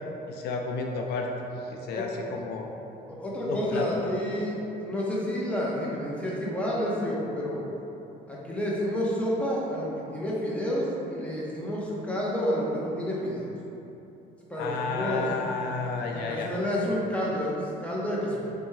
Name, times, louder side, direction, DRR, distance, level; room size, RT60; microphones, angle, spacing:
voice 1, 0.3-1.3 1.7-2.7 3.5-3.9 14.6-16.5, left 4 dB, 75° left, 2 dB, 0.4 m, -31 dB
voice 2, 3.1-7.6 8.3-13.5 14.5-15.3 16.1-18.5, equal, 5° left, -5 dB, 0.7 m, -29 dB
3.4 x 3.3 x 3.2 m, 2.9 s
cardioid pair, 110°, 17 cm